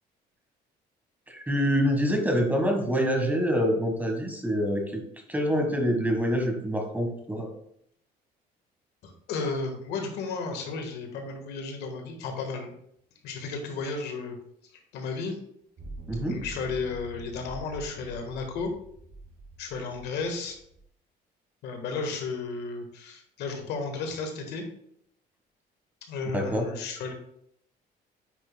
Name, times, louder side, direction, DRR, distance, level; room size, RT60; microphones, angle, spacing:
voice 1, 1.3-5.0 5.3-7.5 16.1-16.4 26.3-26.7, equal, 10° right, 3 dB, 1.4 m, -26 dB
voice 2, 9.0-12.7 13.2-14.3 14.7-15.4 16.3-18.7 19.6-20.6 21.6-24.6 26.1-27.1, left 4 dB, 80° left, 4 dB, 1.5 m, -33 dB
sound 1, 15.8-20.8, right 2 dB, 45° right, 2.2 m, -44 dB
9.0 x 5.8 x 2.2 m, 0.69 s
cardioid pair, 110°, 17 cm